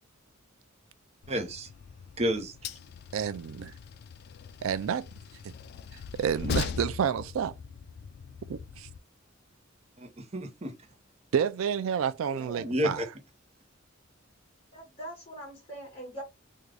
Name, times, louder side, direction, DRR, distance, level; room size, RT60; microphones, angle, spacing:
Train, 1.2-9.0, left 6 dB, 55° left, 0.3 m, -40 dB
voice 1, 1.3-1.7 2.2-2.7 10.0-10.7 12.6-13.1, equal, 30° right, 0.7 m, -31 dB
voice 2, 3.1-3.7 4.6-5.1 6.2-7.5 8.5-8.9 11.3-13.0, right 7 dB, 85° right, 0.3 m, -29 dB
voice 3, 12.3-12.7 14.7-16.2, right 1 dB, 30° left, 2.0 m, -42 dB
3.7 x 2.3 x 3.2 m
head